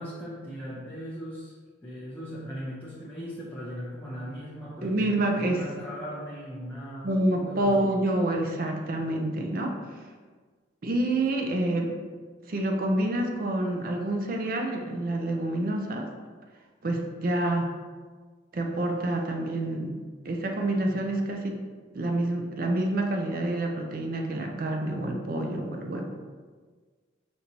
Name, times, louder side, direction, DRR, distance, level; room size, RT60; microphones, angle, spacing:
voice 1, 0.0-1.5 1.8-7.1 7.4-7.9, equal, 10° left, -8 dB, 0.6 m, -38 dB
voice 2, 4.8-5.6 7.0-9.7 10.8-12.0 12.5-16.1 16.8-17.7 18.5-19.9 20.2-21.6 21.9-26.1, right 1 dB, 50° right, 2 dB, 0.5 m, -27 dB
5.1 x 2.6 x 2.9 m, 1.5 s
head